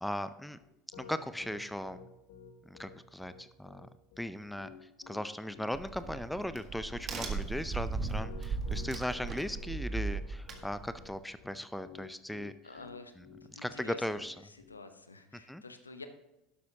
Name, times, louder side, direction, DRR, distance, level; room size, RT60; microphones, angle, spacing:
voice 1, 0.0-0.6 1.0-2.0 2.7-3.9 4.2-4.7 5.1-12.8 13.2-14.4 15.3-15.6, left 1 dB, 5° left, 13 dB, 0.5 m, -38 dB
Piano, 0.6-14.8, left 7 dB, 65° left, 1.6 m, -53 dB
Crack, 5.7-11.2, right 4 dB, 35° right, 1.7 m, -37 dB
voice 2, 12.6-13.1 13.4-14.0 14.7-16.1, left 3 dB, 85° left, 9 dB, 0.8 m, -48 dB
12.0 x 11.5 x 2.9 m, 0.92 s
figure-of-eight pair, 70°, 0 cm